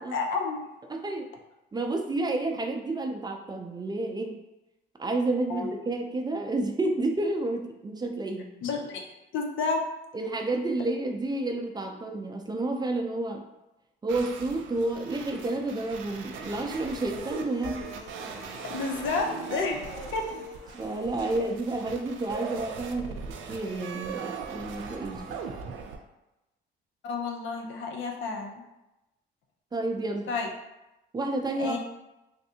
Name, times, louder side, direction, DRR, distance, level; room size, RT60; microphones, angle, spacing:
voice 1, 0.1-0.7 5.5-5.7 8.6-9.0 9.3-9.9 18.6-20.3 27.0-28.6 30.3-30.5 31.6-31.8, left 4 dB, 80° left, 2 dB, 0.6 m, -30 dB
voice 2, 0.9-1.3 1.7-4.4 5.0-8.5 10.1-13.4 14.0-17.9 20.7-25.4 29.7-30.3 31.1-31.8, right 2 dB, 20° right, 3 dB, 0.4 m, -30 dB
sound 1, 14.1-26.0, right 5 dB, 80° right, 0.4 m, -40 dB
sound 2, 16.4-21.5, left 1 dB, 40° left, 1.3 m, -45 dB
3.2 x 2.6 x 2.7 m, 0.95 s
cardioid pair, 90°, 20 cm